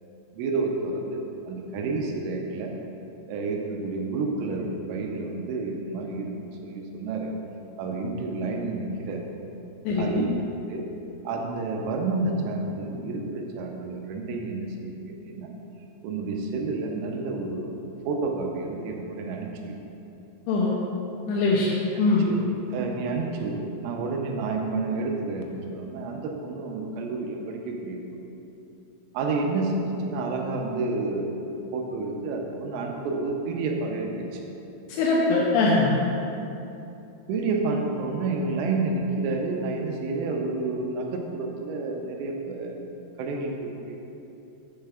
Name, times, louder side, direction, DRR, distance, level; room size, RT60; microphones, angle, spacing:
voice 1, 0.3-2.7 3.3-7.3 7.8-9.3 10.0-10.3 10.7-10.8 11.2-15.0 15.3-15.5 16.0-17.8 18.1-19.8 22.3-22.4 22.7-28.0 29.1-31.4 31.7-34.4 37.3-42.8 43.2-44.1, right 3 dB, 90° right, 1 dB, 3.2 m, -30 dB
voice 2, 9.9-10.3 20.5-20.7 21.3-22.3 34.9-36.0, left 3 dB, 85° left, -4 dB, 2.6 m, -22 dB
7.8 x 6.6 x 3.4 m, 2.9 s
omnidirectional pair, 5.5 m